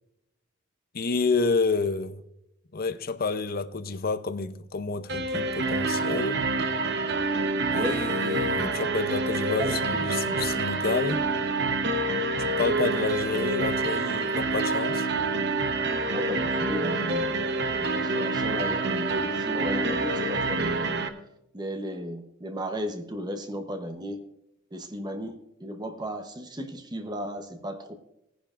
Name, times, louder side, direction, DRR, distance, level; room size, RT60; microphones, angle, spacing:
voice 1, 0.9-2.2 2.7-6.4 7.7-11.2 12.4-15.1, left 4 dB, 45° left, 0.6 m, -29 dB
sound 1, 5.1-21.1, right 3 dB, 55° right, 0.9 m, -27 dB
voice 2, 16.1-21.0 21.5-24.2 24.7-27.9, equal, 20° right, 0.9 m, -35 dB
19.0 x 10.0 x 2.5 m
head